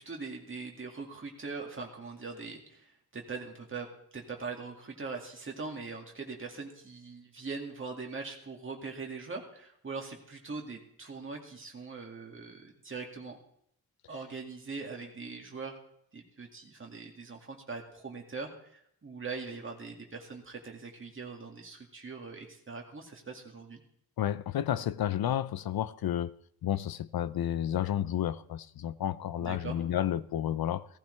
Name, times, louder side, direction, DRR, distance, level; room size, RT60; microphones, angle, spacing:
voice 1, 0.0-2.9 3.1-3.9 4.1-13.4 14.1-15.8 16.1-23.8 29.4-29.8, right 4 dB, 35° right, 2.2 m, -41 dB
voice 2, 24.2-26.3 26.6-30.9, left 11 dB, 80° left, 0.6 m, -31 dB
17.0 x 15.0 x 3.3 m
wide cardioid pair, 175°, 36 cm